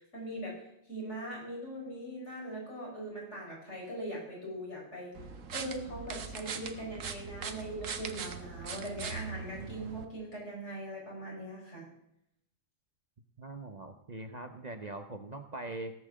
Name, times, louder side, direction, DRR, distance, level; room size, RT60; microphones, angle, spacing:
voice 1, 0.0-5.2 5.5-11.9, right 1 dB, 60° left, -3 dB, 5.4 m, -41 dB
sound 1, 5.2-10.1, right 5 dB, 75° right, 1.4 m, -41 dB
voice 2, 13.4-15.9, right 2 dB, 40° right, 6 dB, 0.8 m, -42 dB
17.0 x 6.1 x 7.5 m, 0.78 s
omnidirectional pair, 1.3 m